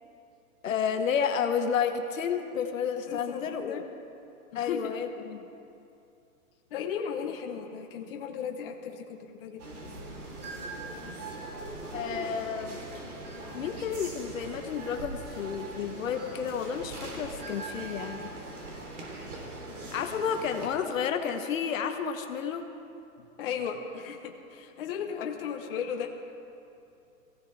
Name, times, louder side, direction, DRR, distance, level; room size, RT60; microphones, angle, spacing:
voice 1, 0.6-3.8 4.5-5.5 11.9-12.8 13.5-18.3 19.9-22.7, left 7 dB, 65° left, 5 dB, 1.1 m, -31 dB
voice 2, 3.1-3.8 4.5-4.9 6.7-9.6 23.4-26.3, left 7 dB, 40° left, 2 dB, 1.0 m, -36 dB
sound 1, 9.6-20.7, right 2 dB, 85° right, 3.7 m, -41 dB
22.5 x 16.0 x 3.4 m, 2.7 s
hypercardioid pair, 170°, 43 cm